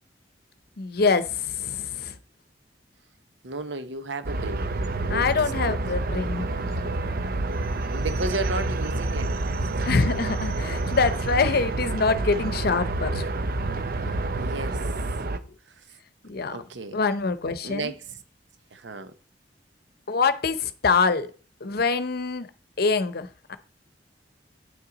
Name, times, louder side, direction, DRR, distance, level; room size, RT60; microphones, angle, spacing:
voice 1, 0.8-2.1 5.1-6.5 9.9-13.3 16.2-16.6 16.9-17.9 20.1-21.3 21.6-22.5 22.8-23.6, left 4 dB, 60° left, 0.7 m, -25 dB
voice 2, 3.4-4.7 5.1-5.3 5.7-5.8 7.9-9.9 14.0-14.9 15.7-15.8 16.5-17.0 17.6-18.2 18.7-19.1, right 2 dB, 80° right, 0.9 m, -34 dB
sound 1, 4.2-15.4, right 2 dB, 55° right, 0.7 m, -28 dB
9.3 x 5.8 x 3.9 m
head